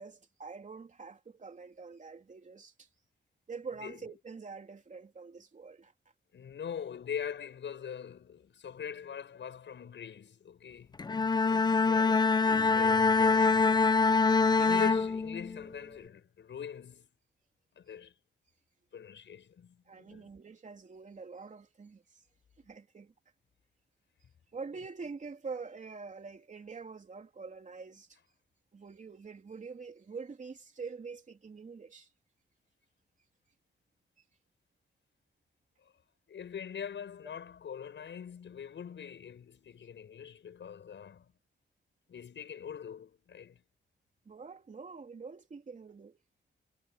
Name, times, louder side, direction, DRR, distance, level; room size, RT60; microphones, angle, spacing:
voice 1, 0.0-2.7 3.5-5.9 19.9-22.0 22.6-23.1 24.5-28.1 28.7-32.1 44.2-46.2, right 4 dB, 40° right, 3.1 m, -45 dB
voice 2, 6.3-11.0 11.4-14.0 14.6-17.1 17.8-18.1 18.9-20.3 36.3-41.3 42.1-43.6, left 8 dB, 75° left, 7.1 m, -42 dB
Bowed string instrument, 11.0-15.7, left 4 dB, 20° left, 0.5 m, -25 dB
wide cardioid pair, 125°, 19 cm